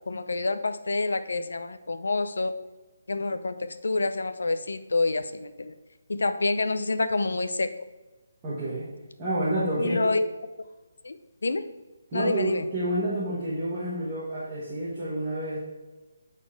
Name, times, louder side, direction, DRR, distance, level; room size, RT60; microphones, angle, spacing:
voice 1, 0.1-2.6 3.1-5.7 6.1-7.7 9.8-10.3 11.0-11.2 11.4-11.6 12.1-12.6, left 3 dB, 80° left, 10 dB, 0.6 m, -27 dB
voice 2, 8.4-8.9 9.2-10.1 12.1-15.6, right 1 dB, 10° right, -10 dB, 1.2 m, -29 dB
8.2 x 4.2 x 4.7 m, 1.2 s
hypercardioid pair, 180°, 0 cm